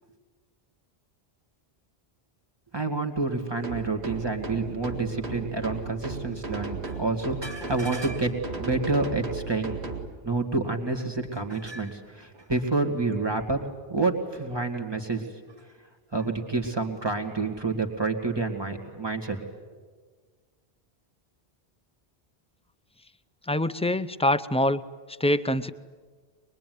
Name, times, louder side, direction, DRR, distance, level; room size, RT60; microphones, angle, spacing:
voice 1, 2.7-9.8 10.2-13.6 13.9-15.2 16.1-19.4, right 3 dB, 25° right, 4 dB, 2.5 m, -28 dB
sound 1, 3.6-10.1, right 4 dB, 85° right, 2.3 m, -35 dB
voice 2, 23.5-24.8 25.2-25.7, left 1 dB, 10° left, 11 dB, 0.5 m, -24 dB
24.0 x 21.5 x 9.5 m, 1.5 s
omnidirectional pair, 1.1 m